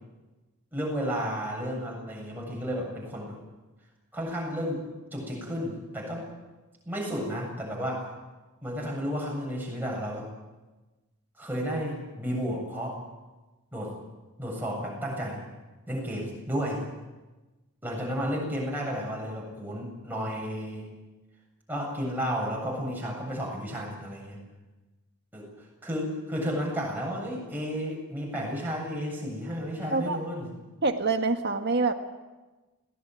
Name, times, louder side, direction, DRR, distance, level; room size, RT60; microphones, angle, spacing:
voice 1, 0.7-3.4 4.1-4.8 5.1-6.3 6.8-8.1 8.6-10.3 11.4-12.9 13.7-13.9 14.4-15.4 15.9-16.8 17.8-20.9 21.7-24.4 25.3-25.5 25.8-30.5, equal, 10° right, -2 dB, 7.6 m, -32 dB
voice 2, 30.8-31.9, right 3 dB, 50° right, 5 dB, 1.8 m, -25 dB
21.5 x 18.0 x 9.3 m, 1.2 s
head